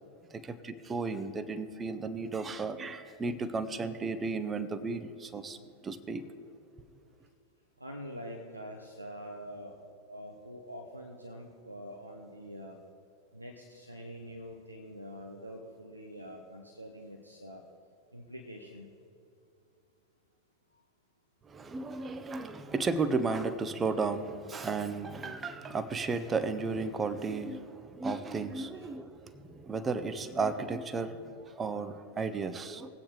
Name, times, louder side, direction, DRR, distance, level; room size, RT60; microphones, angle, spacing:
voice 1, 0.3-5.6 5.8-6.3 21.4-32.9, right 4 dB, 20° right, 0.6 m, -34 dB
voice 2, 7.8-9.8 10.1-12.8 13.3-17.6 18.1-18.9 28.7-28.9, equal, 85° right, 0.9 m, -45 dB
20.0 x 8.5 x 3.2 m
figure-of-eight pair, 90°, 0 cm